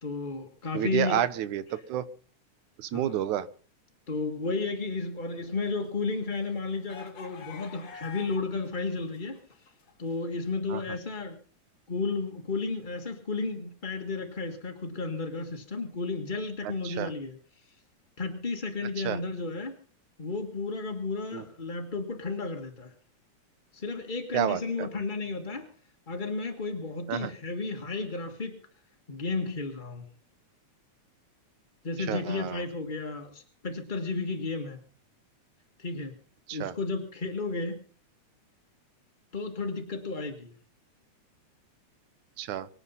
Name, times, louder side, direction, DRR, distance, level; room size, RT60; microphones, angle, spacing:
voice 1, 0.0-1.3 2.9-3.2 4.1-9.4 10.0-11.4 11.9-17.4 18.2-19.7 20.2-22.9 23.7-25.7 26.1-28.6 29.1-30.0 31.8-34.8 35.8-36.1 36.5-37.8 39.3-40.5, left 3 dB, 25° left, 3 dB, 1.0 m, -33 dB
voice 2, 0.7-2.1 2.8-3.5 10.7-10.8 16.8-17.1 19.0-19.2 21.3-21.4 24.3-24.9 27.1-27.3 32.1-32.6 36.5-36.8 42.4-42.7, right 11 dB, 80° right, 14 dB, 2.4 m, -30 dB
sound 1, 5.5-8.7 9.0-10.3, left 7 dB, 45° left, 2.0 m, -47 dB
24.5 x 9.0 x 5.6 m, 0.42 s
omnidirectional pair, 3.4 m